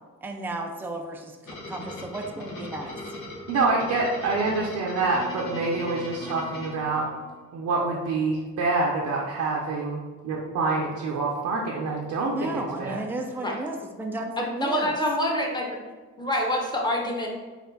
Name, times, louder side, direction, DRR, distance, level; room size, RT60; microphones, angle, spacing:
voice 1, 0.2-2.9 12.3-14.9, right 2 dB, 5° right, 3 dB, 0.4 m, -33 dB
sound 1, 1.4-7.5, left 1 dB, 75° left, 1.3 m, -39 dB
voice 2, 3.5-7.1 7.5-13.0, right 3 dB, 75° right, -2 dB, 0.7 m, -26 dB
voice 3, 14.4-15.7 16.2-17.3, left 1 dB, 15° left, -1 dB, 0.9 m, -26 dB
4.3 x 2.4 x 4.0 m, 1.4 s
cardioid pair, 90°, 30 cm